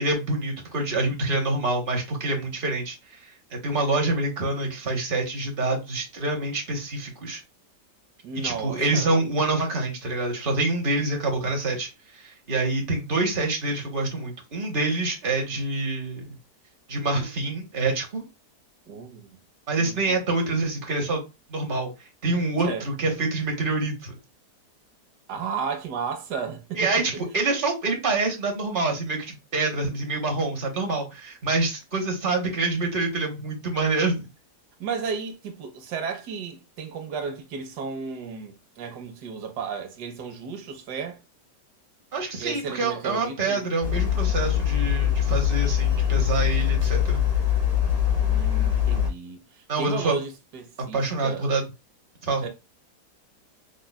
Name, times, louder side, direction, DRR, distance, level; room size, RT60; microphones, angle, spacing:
voice 1, 0.0-3.2 3.5-7.4 8.3-16.2 16.9-18.2 19.7-21.2 21.5-21.9 22.2-24.2 26.8-34.3 42.1-47.2 49.7-50.2 50.9-51.6 52.2-52.5, right 2 dB, 40° right, 0.9 m, -26 dB
voice 2, 8.2-9.2 18.9-19.4 19.8-20.2 22.6-22.9 25.3-27.2 34.8-41.2 42.4-43.7 48.2-51.5 52.4-52.5, right 5 dB, 75° right, 1.3 m, -34 dB
sound 1, 43.8-49.1, left 10 dB, 45° left, 0.5 m, -23 dB
5.3 x 2.3 x 2.2 m
omnidirectional pair, 1.8 m